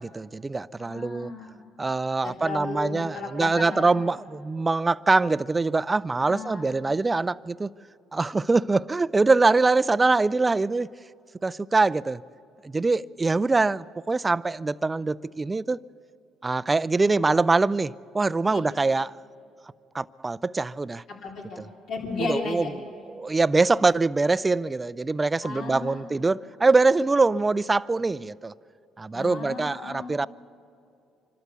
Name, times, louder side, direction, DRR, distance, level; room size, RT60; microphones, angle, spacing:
voice 1, 0.0-1.3 1.8-7.7 8.1-10.9 11.4-12.2 12.6-15.8 16.4-19.1 19.9-21.0 21.6-21.7 22.2-22.6 23.2-28.5 29.0-30.3, right 3 dB, 20° right, 0.4 m, -23 dB
voice 2, 0.8-1.6 2.2-3.9 6.2-6.7 18.5-18.6 21.1-22.7 25.4-26.1 29.1-30.1, left 4 dB, 60° left, 3.4 m, -35 dB
25.5 x 12.5 x 8.2 m
supercardioid pair, 75°, 0 cm